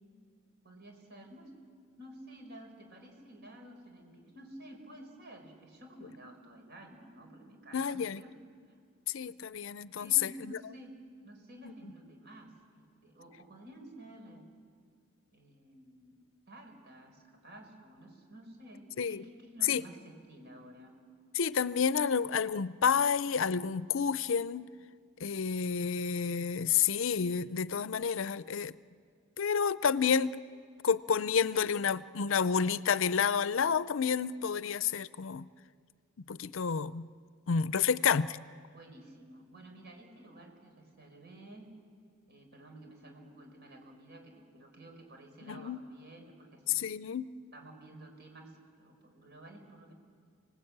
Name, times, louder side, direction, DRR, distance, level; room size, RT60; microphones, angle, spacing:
voice 1, 0.6-1.5 2.0-8.4 10.0-11.0 11.2-14.4 15.3-16.2 16.5-20.9 37.7-37.9 38.7-41.7 42.3-46.8 47.5-49.9, right 1 dB, 50° right, 3 dB, 4.7 m, -52 dB
voice 2, 7.7-8.2 9.1-10.6 19.0-19.2 19.6-19.8 21.3-24.7 25.2-28.8 29.4-30.4 30.8-35.5 36.3-37.1 37.5-38.3 45.5-45.8 46.7-47.3, left 6 dB, 65° left, 17 dB, 0.5 m, -29 dB
29.5 x 19.5 x 8.7 m, 2.2 s
head